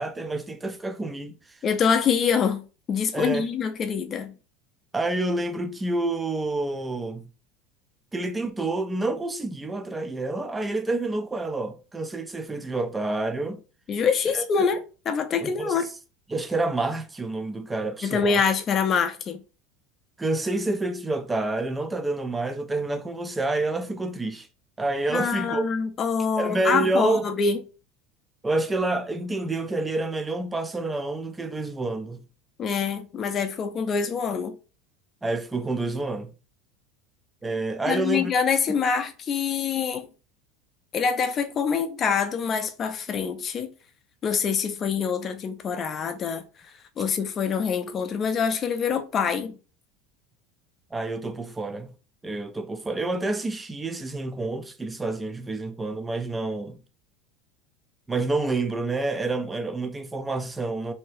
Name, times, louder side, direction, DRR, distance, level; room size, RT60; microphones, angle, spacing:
voice 1, 0.0-1.6 3.1-3.5 4.9-7.2 8.1-13.6 14.3-14.7 15.4-15.8 16.3-18.4 20.2-24.5 24.8-25.7 26.4-27.2 28.4-32.2 35.2-36.3 37.4-38.3 50.9-51.9 52.2-56.8 58.1-60.9, right 2 dB, 15° right, 0.5 m, -28 dB
voice 2, 1.6-4.3 13.9-15.9 18.0-19.4 25.1-27.6 32.6-34.5 37.9-40.1 40.9-43.7 44.2-46.4 47.0-49.6, left 6 dB, 35° left, 0.5 m, -25 dB
2.8 x 2.8 x 3.1 m
supercardioid pair, 110°, 0 cm